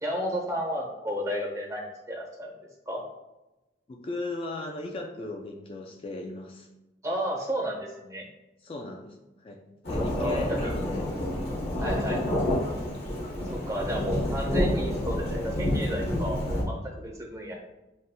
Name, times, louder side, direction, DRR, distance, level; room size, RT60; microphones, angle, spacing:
voice 1, 0.0-2.5 2.9-3.0 7.0-8.3 10.2-10.7 11.8-12.4 13.4-17.5, equal, 20° right, -2 dB, 0.9 m, -32 dB
voice 2, 3.9-6.7 8.6-9.6 9.9-11.1, left 2 dB, 30° left, 2 dB, 0.3 m, -37 dB
Thunderstorm / Rain, 9.8-16.6, left 1 dB, 65° left, 1.4 m, -29 dB
7.1 x 2.5 x 2.2 m, 1.0 s
head